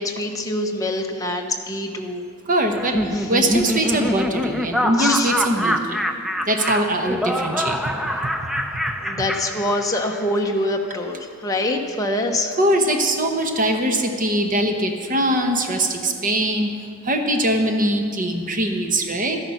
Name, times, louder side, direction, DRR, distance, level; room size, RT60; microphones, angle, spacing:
voice 1, 0.0-2.2 3.1-3.3 5.0-5.3 8.1-8.3 9.0-12.6, left 1 dB, 15° left, 2 dB, 0.9 m, -25 dB
voice 2, 2.5-6.0 6.5-7.8 8.2-8.3 12.6-16.7 17.0-19.4, right 1 dB, 35° right, 4 dB, 1.0 m, -22 dB
Laughter, 2.7-10.2, equal, ahead, 0.4 m, -25 dB
12.5 x 10.5 x 5.8 m, 2.1 s
head